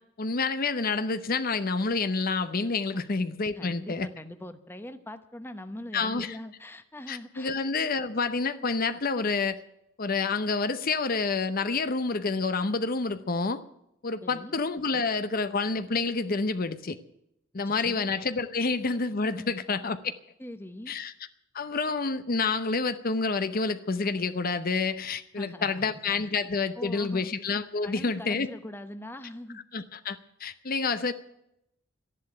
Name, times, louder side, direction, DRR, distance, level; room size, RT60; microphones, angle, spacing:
voice 1, 0.2-4.1 5.9-6.4 7.1-9.6 10.0-13.6 14.0-17.0 17.5-20.1 20.9-21.1 21.5-28.5 29.7-31.1, left 4 dB, 45° left, 11 dB, 0.8 m, -28 dB
voice 2, 3.5-7.6 14.2-14.6 17.6-18.1 19.3-19.6 20.4-20.9 25.3-25.9 26.8-27.3 27.8-29.6, left 1 dB, 10° left, 9 dB, 0.9 m, -42 dB
13.0 x 11.0 x 8.9 m, 0.80 s
head